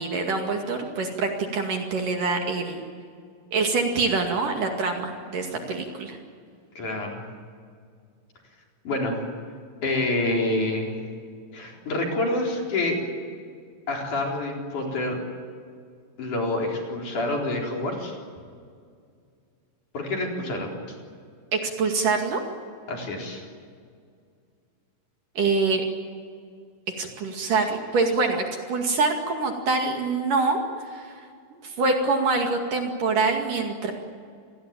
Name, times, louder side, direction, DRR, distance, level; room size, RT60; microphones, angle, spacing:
voice 1, 0.0-2.8 3.5-6.2 21.5-22.4 25.3-25.8 27.0-30.6 30.9-31.2 31.5-33.9, right 3 dB, 50° right, 3 dB, 3.1 m, -25 dB
voice 2, 6.8-7.2 8.9-9.2 9.8-11.0 11.5-13.0 13.9-15.2 16.2-18.2 19.9-20.7 22.9-23.4, left 2 dB, 40° left, 0 dB, 5.1 m, -27 dB
28.0 x 20.5 x 8.9 m, 2.2 s
omnidirectional pair, 6.0 m